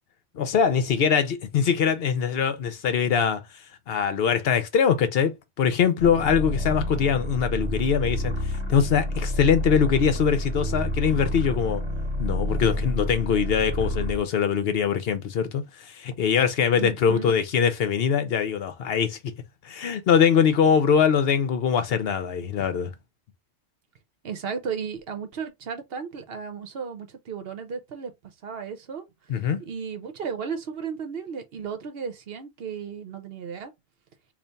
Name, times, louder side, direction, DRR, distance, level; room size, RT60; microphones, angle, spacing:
voice 1, 0.3-3.4 3.9-11.8 12.2-19.2 19.6-22.9 29.3-29.6, left 7 dB, 65° left, 0.8 m, -23 dB
sound 1, 6.0-14.2, left 1 dB, 25° right, 1.2 m, -29 dB
voice 2, 16.7-17.3 24.2-28.1 28.4-29.0 29.7-33.7, right 6 dB, 65° right, 0.9 m, -34 dB
3.4 x 2.5 x 3.9 m
omnidirectional pair, 1.1 m